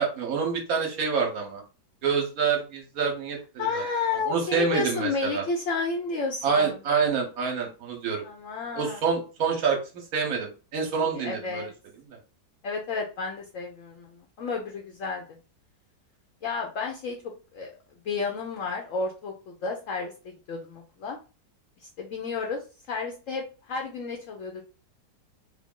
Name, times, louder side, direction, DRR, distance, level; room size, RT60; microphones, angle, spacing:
voice 1, 0.0-1.6 2.0-3.8 4.3-5.4 6.4-8.2 8.8-11.7 12.0-12.2, right 5 dB, 60° right, 1 dB, 1.3 m, -27 dB
voice 2, 3.6-6.8 8.2-9.0 11.0-11.7 12.6-15.2 16.4-17.2 17.5-17.7 18.0-21.2 21.8-22.6 22.9-24.6, left 4 dB, 65° left, 1 dB, 0.8 m, -31 dB
3.5 x 2.0 x 3.6 m, 0.34 s
omnidirectional pair, 1.9 m